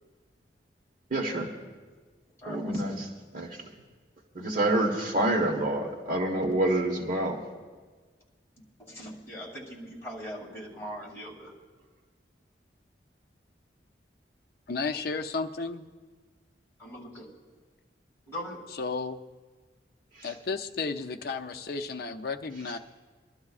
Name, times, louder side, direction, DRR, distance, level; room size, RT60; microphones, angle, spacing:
voice 1, 1.1-1.5 2.5-3.7 4.3-7.4 20.2-20.3, right 1 dB, 50° right, -2 dB, 1.3 m, -28 dB
voice 2, 2.4-2.9 8.8-11.5 16.8-17.2 18.3-18.6, equal, 15° left, -5 dB, 3.0 m, -40 dB
voice 3, 14.7-15.8 18.7-19.2 20.2-22.8, left 4 dB, 60° left, 5 dB, 0.6 m, -33 dB
25.0 x 12.0 x 2.4 m, 1.4 s
head